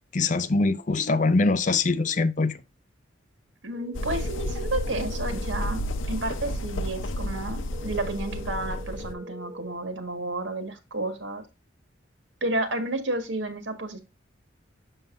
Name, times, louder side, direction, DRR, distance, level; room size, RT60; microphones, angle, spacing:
voice 1, 0.1-2.6, left 3 dB, 40° left, 0.5 m, -23 dB
voice 2, 3.6-11.4 12.4-14.0, right 2 dB, 75° right, 1.7 m, -31 dB
sound 1, 3.7-5.7 7.7-9.7, right 1 dB, 30° right, 0.7 m, -43 dB
sound 2, 4.0-9.1, left 1 dB, 85° left, 0.7 m, -31 dB
7.2 x 6.4 x 2.5 m
head